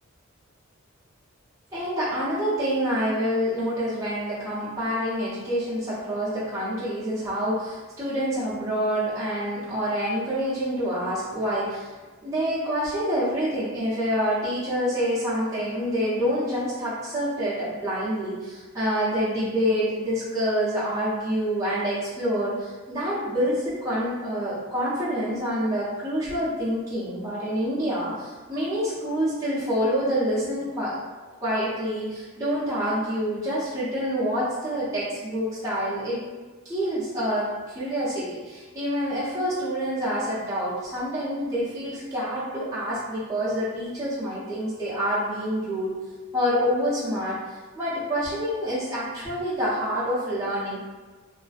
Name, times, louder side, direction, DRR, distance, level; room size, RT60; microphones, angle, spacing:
voice 1, 1.7-11.9 12.2-31.0 31.4-36.2 36.6-45.9 46.3-47.4 47.8-50.8, equal, 15° right, -12 dB, 0.7 m, -27 dB
2.5 x 2.1 x 2.4 m, 1.3 s
head